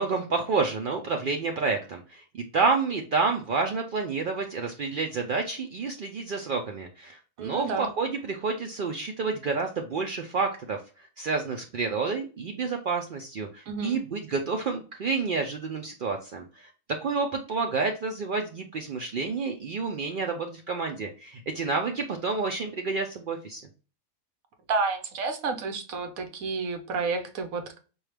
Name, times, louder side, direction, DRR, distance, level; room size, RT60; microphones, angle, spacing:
voice 1, 0.0-2.2 2.5-10.8 11.2-16.7 17.0-23.6, right 4 dB, 90° right, 3 dB, 0.4 m, -29 dB
voice 2, 7.4-7.9 13.7-14.0 24.7-27.8, right 4 dB, 75° right, 6 dB, 1.2 m, -30 dB
4.6 x 2.3 x 3.2 m, 0.35 s
omnidirectional pair, 1.5 m